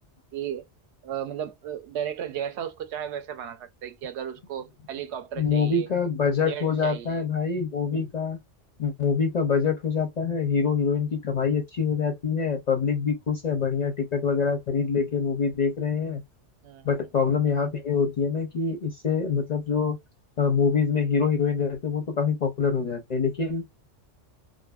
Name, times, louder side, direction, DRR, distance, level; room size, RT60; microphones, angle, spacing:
voice 1, 0.3-0.6 1.0-5.9 6.5-7.2 16.6-16.9, right 9 dB, 70° right, 0.8 m, -34 dB
voice 2, 5.4-8.4 8.8-16.2 16.8-20.0 20.4-23.6, left 5 dB, 50° left, 0.5 m, -25 dB
2.6 x 2.5 x 2.2 m
omnidirectional pair, 1.2 m